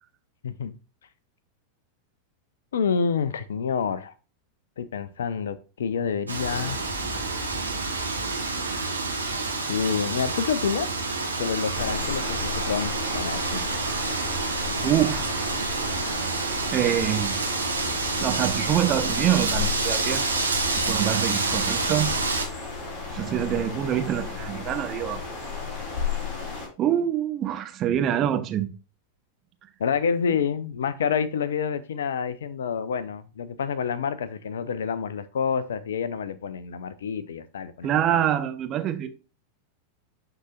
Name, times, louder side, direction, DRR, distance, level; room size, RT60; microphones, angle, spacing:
voice 1, 2.7-4.1 4.8-6.8 9.3-10.9 11.4-13.7 29.8-38.2, left 6 dB, 65° left, 0.5 m, -28 dB
Wind, 6.3-22.4, right 3 dB, 80° right, 1.3 m, -28 dB
sound 1, 6.4-11.1, left 2 dB, 15° left, 3.5 m, -45 dB
sound 2, 11.7-26.7, left 5 dB, 40° left, 3.8 m, -34 dB
voice 2, 14.8-15.3 16.7-17.4 18.2-20.2 20.9-22.1 23.1-25.2 26.8-28.7 37.8-39.1, right 11 dB, 30° right, 0.8 m, -25 dB
11.5 x 3.9 x 2.4 m
figure-of-eight pair, 90°, 0 cm